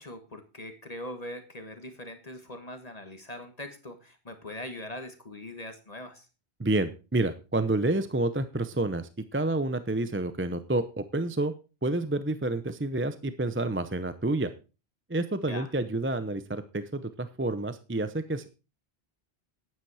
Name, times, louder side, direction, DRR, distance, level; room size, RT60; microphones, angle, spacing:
voice 1, 0.0-6.3 15.5-15.7, left 1 dB, 40° left, 7 dB, 1.5 m, -41 dB
voice 2, 6.6-11.5 11.8-14.5 15.1-18.5, right 2 dB, 15° right, 12 dB, 0.6 m, -29 dB
10.5 x 9.1 x 4.8 m, 0.32 s
omnidirectional pair, 1.1 m